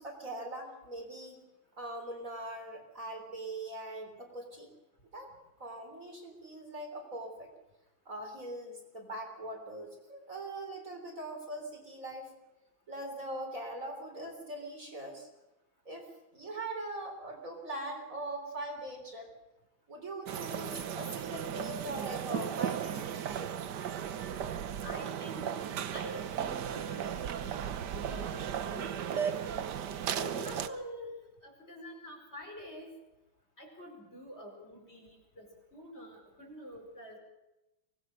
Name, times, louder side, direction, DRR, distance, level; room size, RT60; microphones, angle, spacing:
voice 1, 0.0-1.4 1.8-4.7 5.1-5.3 5.6-7.5 8.1-12.3 12.9-15.3 15.9-16.1 16.3-19.3 19.9-23.5, right 1 dB, 35° right, 1 dB, 4.1 m, -41 dB
sound 1, 20.3-30.7, right 8 dB, 60° right, 1.4 m, -36 dB
voice 2, 24.8-29.6 30.2-31.1 31.4-32.9 33.6-37.2, equal, 30° left, 1 dB, 5.1 m, -47 dB
24.5 x 19.5 x 6.3 m, 0.97 s
omnidirectional pair, 2.3 m